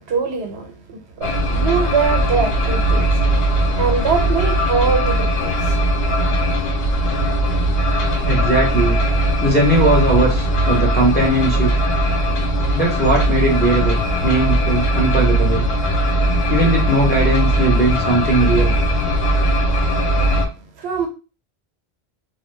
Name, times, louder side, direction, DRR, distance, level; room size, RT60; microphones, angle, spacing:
voice 1, 0.0-3.1 3.8-5.7 20.8-21.1, right 5 dB, 80° right, 1.0 m, -22 dB
sound 1, 1.2-20.4, right 1 dB, 70° left, 0.8 m, -19 dB
voice 2, 8.2-9.0 9.4-11.7 12.7-15.6 16.5-18.7, right 1 dB, 10° left, 0.7 m, -18 dB
2.5 x 2.3 x 3.2 m
omnidirectional pair, 1.1 m